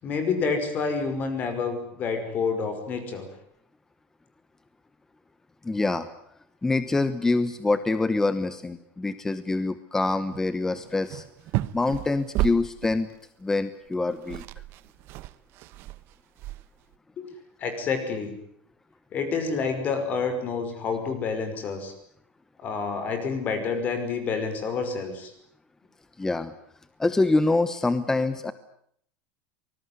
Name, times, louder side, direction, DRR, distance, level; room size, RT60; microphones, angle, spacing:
voice 1, 0.0-3.3 17.2-17.3 17.6-18.3 19.1-21.9 22.6-25.3, left 5 dB, 30° left, 8 dB, 5.6 m, -28 dB
voice 2, 5.6-6.1 6.6-11.2 11.7-13.1 13.4-14.4 26.2-26.5 27.0-28.5, left 3 dB, 10° left, 12 dB, 1.0 m, -25 dB
sound 1, 10.3-10.5 10.7-13.1 13.9-14.0 14.1-16.9, right 17 dB, 45° right, 1.0 m, -33 dB
25.0 x 20.5 x 9.6 m, 0.67 s
supercardioid pair, 155°, 6 cm